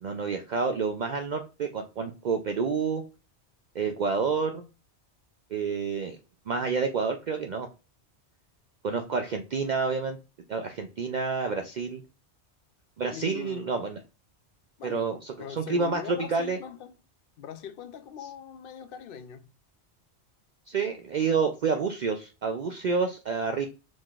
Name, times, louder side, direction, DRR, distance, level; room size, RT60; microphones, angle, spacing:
voice 1, 0.0-3.0 3.7-4.6 5.5-6.2 6.5-7.7 8.8-10.2 10.5-12.0 13.0-14.0 14.8-16.6 20.7-23.7, right 5 dB, 55° right, 0.5 m, -29 dB
voice 2, 13.1-13.8 14.8-15.1 15.4-17.0 17.4-19.5, left 8 dB, 60° left, 0.7 m, -42 dB
5.0 x 3.7 x 2.4 m
omnidirectional pair, 1.1 m